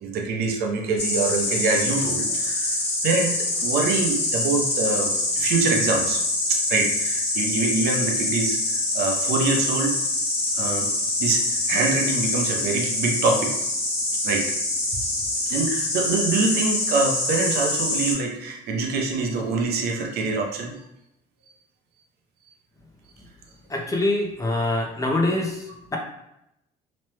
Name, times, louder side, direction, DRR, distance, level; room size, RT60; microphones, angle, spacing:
voice 1, 0.0-2.8 3.0-6.2 6.5-10.0 10.6-10.9 11.2-13.5 14.2-14.5 15.5-20.8, right 3 dB, 70° right, 1 dB, 0.6 m, -25 dB
Insect, 1.0-18.1, left 2 dB, 35° left, 1.4 m, -25 dB
voice 2, 23.7-25.6, left 2 dB, 20° left, 0 dB, 0.5 m, -24 dB
3.0 x 2.1 x 3.1 m, 0.82 s
cardioid pair, 110°, 17 cm